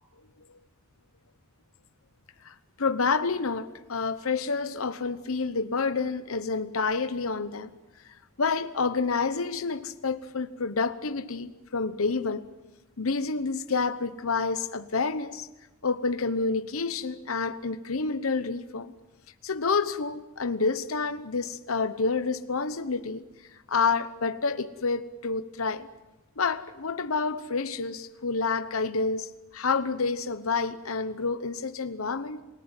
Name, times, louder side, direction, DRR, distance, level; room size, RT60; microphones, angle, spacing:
voice 1, 2.4-7.7 8.1-12.4 13.0-15.5 15.8-18.9 19.4-23.2 23.7-25.9 26.4-32.4, left 4 dB, 85° left, 11 dB, 1.0 m, -29 dB
28.0 x 18.5 x 9.0 m, 1.1 s
head